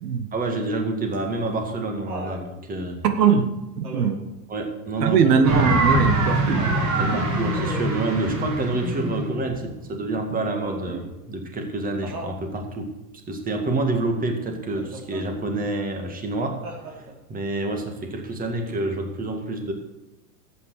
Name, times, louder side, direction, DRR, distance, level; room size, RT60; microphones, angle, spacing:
voice 1, 0.3-3.0 4.5-5.2 6.6-12.9 13.3-19.7, right 2 dB, 15° right, 4 dB, 2.0 m, -28 dB
Laughter, 1.1-2.4 3.8-4.3 5.5-5.9 7.5-8.1 10.6-11.1 12.0-12.4 14.7-15.2 16.6-17.3 18.7-18.8, right 2 dB, 60° right, 4.3 m, -36 dB
voice 2, 3.0-4.2 5.0-6.7 7.0-7.2, right 6 dB, 75° right, 8 dB, 1.4 m, -21 dB
sound 1, 5.4-10.3, right 1 dB, 35° right, 4.1 m, -23 dB
12.5 x 8.5 x 6.4 m, 1.0 s
hypercardioid pair, 130°, 48 cm